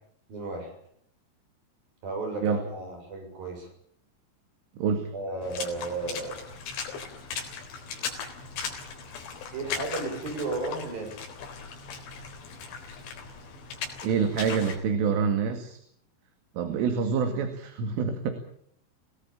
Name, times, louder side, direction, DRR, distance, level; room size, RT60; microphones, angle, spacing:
voice 1, 0.3-0.7 2.0-3.7 5.1-6.4 9.5-11.2, right 2 dB, 50° right, 3 dB, 8.8 m, -34 dB
voice 2, 4.8-5.1 14.0-15.8 16.6-18.3, right 6 dB, 85° right, 7 dB, 4.8 m, -26 dB
Water / Splash splatter, 5.4-14.8, left 6 dB, 80° left, 6.2 m, -38 dB
27.5 x 18.5 x 8.8 m, 0.66 s
omnidirectional pair, 5.6 m